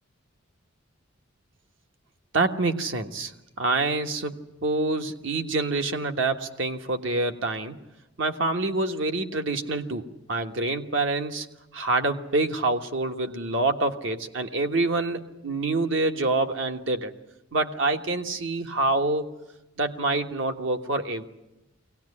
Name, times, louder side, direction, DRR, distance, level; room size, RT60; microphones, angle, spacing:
voice 1, 2.3-3.3 3.6-7.8 8.2-11.5 11.7-17.1 17.5-19.3 19.8-21.2, right 2 dB, 65° right, 6 dB, 1.4 m, -26 dB
22.5 x 18.0 x 9.8 m, 0.96 s
head